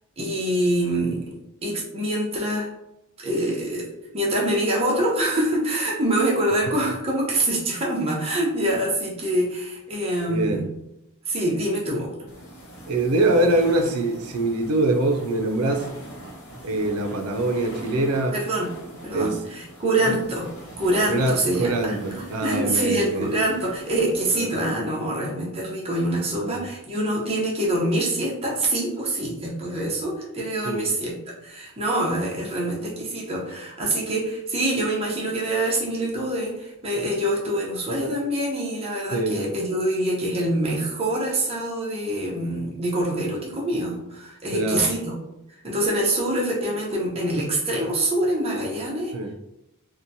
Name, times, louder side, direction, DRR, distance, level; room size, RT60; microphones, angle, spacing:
voice 1, 0.2-1.2 1.6-2.7 3.2-3.9 4.1-10.6 11.2-12.1 18.3-18.7 19.0-20.5 20.8-45.1 45.6-49.1, right 1 dB, 25° right, -4 dB, 0.7 m, -25 dB
voice 2, 10.3-10.7 12.9-15.9 16.6-18.4 19.1-19.4 20.1-20.2 21.1-23.3 24.3-24.5 26.4-26.6 30.6-30.8 39.1-39.5 44.5-44.8 49.1-49.3, right 2 dB, 80° right, 5 dB, 0.4 m, -24 dB
sound 1, 12.3-24.2, right 1 dB, 65° left, 0.7 m, -42 dB
2.8 x 2.1 x 2.6 m, 0.88 s
head